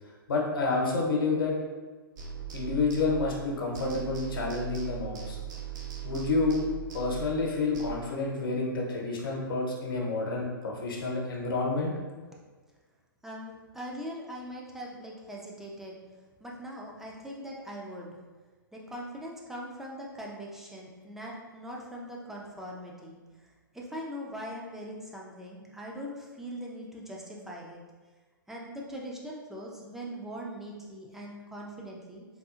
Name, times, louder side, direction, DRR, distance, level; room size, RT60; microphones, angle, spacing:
voice 1, 0.3-1.6 2.5-5.4 6.0-6.6 6.9-11.9, left 3 dB, 75° left, -1 dB, 0.9 m, -29 dB
sound 1, 2.2-3.5 3.7-7.9, right 9 dB, 55° right, 0.5 m, -39 dB
voice 2, 13.2-15.9 16.4-18.2 18.7-27.8 28.5-32.3, equal, 5° right, -3 dB, 0.5 m, -41 dB
3.7 x 2.7 x 2.5 m, 1.4 s
hypercardioid pair, 125°, 12 cm